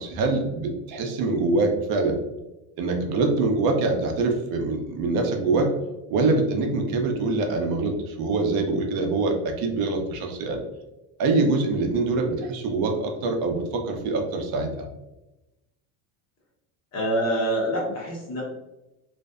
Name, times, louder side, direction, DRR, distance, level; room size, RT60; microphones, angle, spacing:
voice 1, 0.0-2.2 2.8-5.7 6.1-10.6 11.2-14.9, right 3 dB, 60° right, 3 dB, 0.6 m, -24 dB
voice 2, 16.9-18.4, right 1 dB, 35° left, -3 dB, 0.9 m, -25 dB
2.6 x 2.1 x 2.3 m, 0.98 s
cardioid pair, 125°, 42 cm